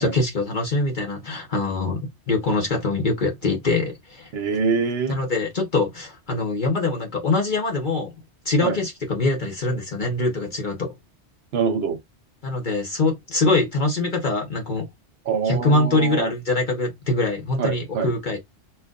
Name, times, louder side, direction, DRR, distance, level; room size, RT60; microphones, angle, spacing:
voice 1, 0.0-4.3 5.1-8.1 8.4-10.9 12.4-14.9 15.4-18.4, left 2 dB, 45° left, 1.1 m, -23 dB
voice 2, 4.3-5.1 8.6-8.8 11.5-12.0 15.3-16.3 17.6-18.1, right 6 dB, 70° right, 0.9 m, -24 dB
4.4 x 2.5 x 2.3 m
omnidirectional pair, 1.2 m